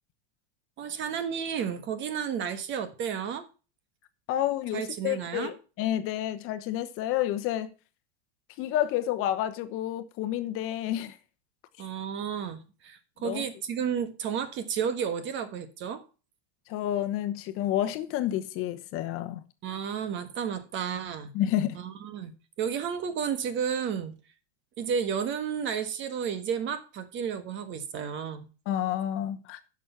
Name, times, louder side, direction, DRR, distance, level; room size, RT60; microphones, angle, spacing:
voice 1, 0.8-3.5 4.7-5.5 11.8-16.0 19.6-21.3 21.7-24.2 24.8-28.5, right 7 dB, 35° right, 1.4 m, -32 dB
voice 2, 4.3-7.7 8.6-11.1 13.2-13.4 16.7-19.4 21.3-21.8 28.7-29.6, left 12 dB, 40° left, 1.0 m, -29 dB
10.0 x 6.3 x 5.8 m
supercardioid pair, 135°, 32 cm